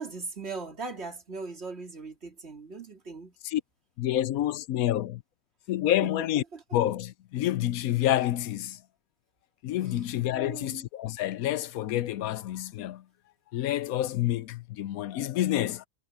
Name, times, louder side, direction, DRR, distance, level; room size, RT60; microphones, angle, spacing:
voice 1, 0.0-3.3 6.5-6.6 10.3-10.9, right 4 dB, 45° right, 3.3 m, -39 dB
voice 2, 4.0-5.2 5.7-6.4 6.7-8.8 9.6-13.0 13.5-15.9, left 13 dB, 80° left, 1.1 m, -28 dB
omnidirectional pair, 1.5 m